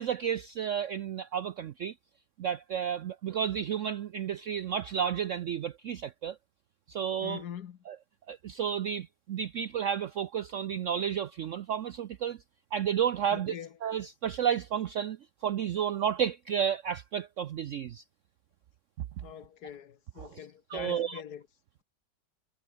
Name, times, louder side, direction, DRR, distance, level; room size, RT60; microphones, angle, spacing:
voice 1, 0.0-1.9 2.4-6.4 6.9-7.4 7.9-8.0 8.3-12.4 12.7-13.6 13.8-15.2 15.4-18.0 20.2-20.3 20.7-21.2, right 8 dB, 70° right, 0.7 m, -31 dB
voice 2, 7.2-7.8 13.3-13.7 19.2-21.4, left 9 dB, 65° left, 1.5 m, -43 dB
omnidirectional pair, 1.9 m